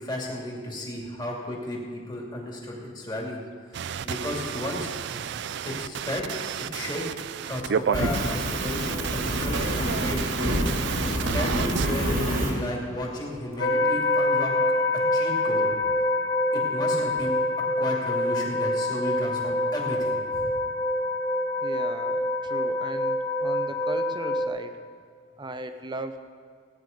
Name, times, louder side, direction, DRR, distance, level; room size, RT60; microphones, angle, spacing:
voice 1, 0.0-3.4 3.7-5.2 5.6-6.4 6.7-7.0 7.5-10.5 11.1-14.5 15.1-15.7 16.5-17.3 17.8-20.5, left 1 dB, 20° left, -2 dB, 2.5 m, -33 dB
sound 1, 3.7-11.9, right 7 dB, 60° right, 0.3 m, -32 dB
Fire, 7.9-12.5, equal, 80° right, 2.7 m, -27 dB
sound 2, 13.6-24.5, left 1 dB, 75° left, 2.4 m, -26 dB
voice 2, 21.6-24.7 25.4-26.2, right 1 dB, 20° right, 8 dB, 0.7 m, -37 dB
17.0 x 9.6 x 5.2 m, 2.1 s
head